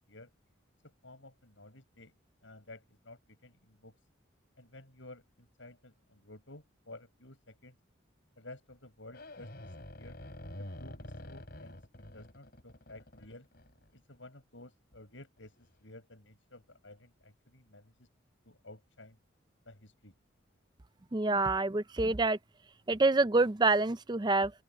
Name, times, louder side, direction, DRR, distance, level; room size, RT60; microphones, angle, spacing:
voice 1, 1.0-2.1 2.4-4.0 4.6-7.8 8.4-10.2 10.6-13.5 13.9-18.1 18.4-19.2 19.7-20.1, left 2 dB, 70° left, 7.1 m, -53 dB
sound 1, 9.1-14.2 14.9-15.0 15.4-15.7, left 1 dB, 50° left, 4.1 m, -47 dB
voice 2, 21.1-22.4 22.9-24.5, right 3 dB, 20° right, 0.5 m, -27 dB
open air
head